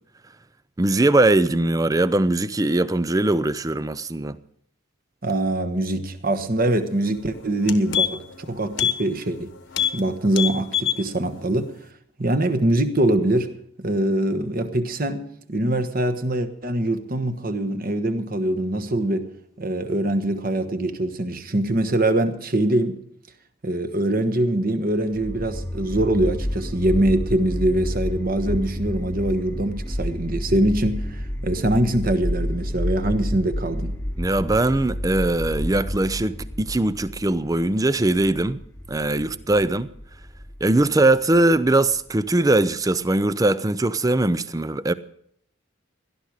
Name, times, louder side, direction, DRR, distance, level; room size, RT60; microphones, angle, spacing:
voice 1, 0.8-4.4 34.2-38.6 38.9-39.9 40.6-44.9, right 2 dB, 15° right, 0.5 m, -21 dB
voice 2, 5.2-9.5 9.9-11.7 12.2-13.5 13.8-19.3 19.6-23.0 23.6-34.0, right 1 dB, 40° right, 1.2 m, -23 dB
sound 1, 7.1-7.2 7.5-8.4 8.7-9.0 9.3-9.4 9.7-10.0 10.3-11.0 11.4-11.5, left 8 dB, 60° left, 1.2 m, -24 dB
sound 2, 25.1-42.2, equal, 10° left, 1.0 m, -30 dB
18.0 x 12.0 x 4.9 m
head